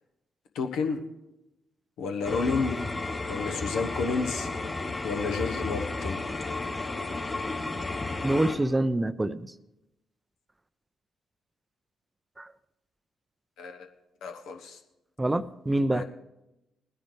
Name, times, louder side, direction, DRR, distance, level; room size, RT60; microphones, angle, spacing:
voice 1, 0.5-1.0 2.0-2.8 3.3-4.5 5.0-6.2 13.6-13.9 14.2-14.8 15.9-16.0, left 4 dB, 65° left, 4 dB, 1.0 m, -30 dB
sound 1, 2.2-8.6, left 3 dB, 20° left, 2.6 m, -33 dB
voice 2, 8.2-9.5 12.4-12.5 15.2-16.0, right 1 dB, 20° right, 15 dB, 0.5 m, -26 dB
20.0 x 10.0 x 3.3 m, 0.92 s
figure-of-eight pair, 40°, 0 cm